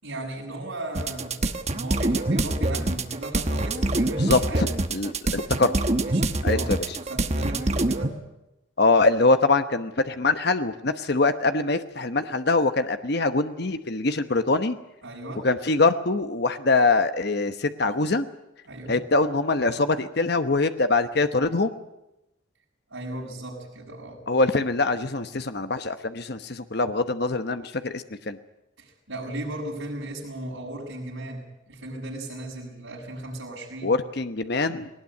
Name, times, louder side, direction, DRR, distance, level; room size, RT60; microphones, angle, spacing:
voice 1, 0.0-4.7 6.0-8.2 15.0-15.5 18.6-19.0 22.9-24.2 28.8-33.9, right 1 dB, 85° right, -9 dB, 6.5 m, -36 dB
sound 1, 1.0-8.1, right 2 dB, 35° right, 1.2 m, -25 dB
voice 2, 4.2-5.7 6.4-6.8 8.8-14.8 15.4-18.2 18.9-21.7 24.3-28.4 33.8-34.9, left 3 dB, 55° left, 10 dB, 1.0 m, -23 dB
19.5 x 19.0 x 9.7 m, 0.92 s
head